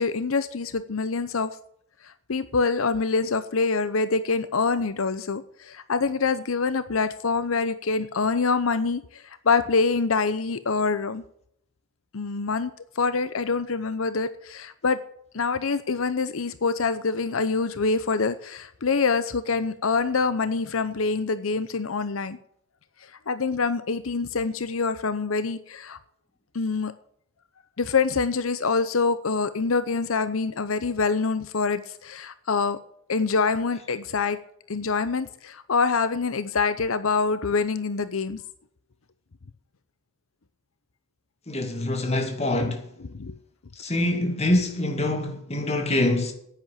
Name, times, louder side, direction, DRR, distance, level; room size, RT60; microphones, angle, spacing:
voice 1, 0.0-1.5 2.0-11.2 12.1-12.7 13.0-15.0 15.3-22.4 23.3-26.0 26.5-26.9 27.8-32.8 33.1-34.4 34.7-38.4 42.6-42.7 43.0-43.4, left 4 dB, 85° left, 0.8 m, -25 dB
voice 2, 41.5-42.9 43.8-46.3, left 1 dB, 30° left, 2.3 m, -25 dB
10.5 x 9.3 x 7.4 m
head